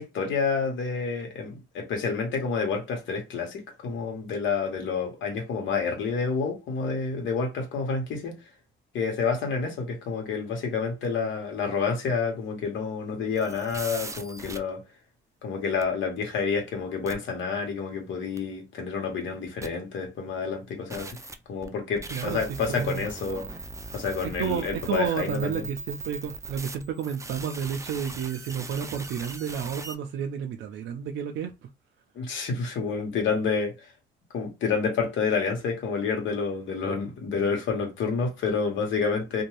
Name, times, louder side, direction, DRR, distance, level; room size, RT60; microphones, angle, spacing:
voice 1, 0.0-8.3 8.9-14.8 15.4-21.2 21.5-23.6 23.9-25.6 32.1-33.9 34.3-39.4, left 5 dB, 75° left, 1.2 m, -29 dB
sound 1, 13.4-14.6 15.8-15.9 17.1-17.2 18.4-18.5 19.6-19.7 20.9-30.0, right 3 dB, 15° right, 0.4 m, -40 dB
voice 2, 22.1-23.1 24.2-31.7, right 8 dB, 70° right, 0.5 m, -31 dB
2.6 x 2.2 x 3.1 m
cardioid pair, 90°, 20 cm